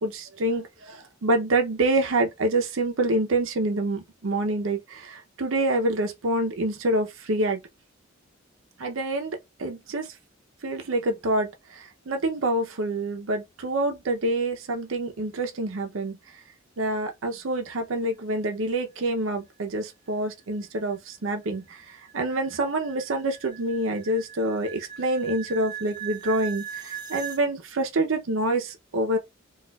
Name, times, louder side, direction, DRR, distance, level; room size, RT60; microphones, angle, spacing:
voice 1, 0.0-7.6 8.8-10.1 10.6-16.2 16.8-29.2, right 2 dB, 90° right, 0.6 m, -27 dB
sound 1, 20.5-27.4, right 8 dB, 20° right, 0.8 m, -40 dB
4.1 x 2.4 x 2.3 m
head